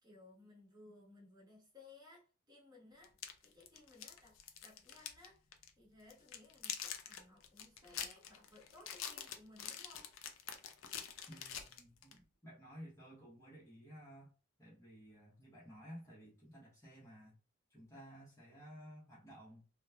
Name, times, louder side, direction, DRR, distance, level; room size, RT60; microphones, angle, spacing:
voice 1, 0.0-3.2 3.4-5.4 5.8-10.1, left 2 dB, 20° right, -6 dB, 1.2 m, -60 dB
sound 1, 3.0-5.3 5.5-5.7 6.1-12.2, left 8 dB, 65° left, 0.4 m, -45 dB
voice 2, 11.3-14.3 14.6-17.3 17.7-19.6, equal, 15° left, -7 dB, 0.9 m, -55 dB
3.0 x 2.2 x 2.2 m, 0.35 s
head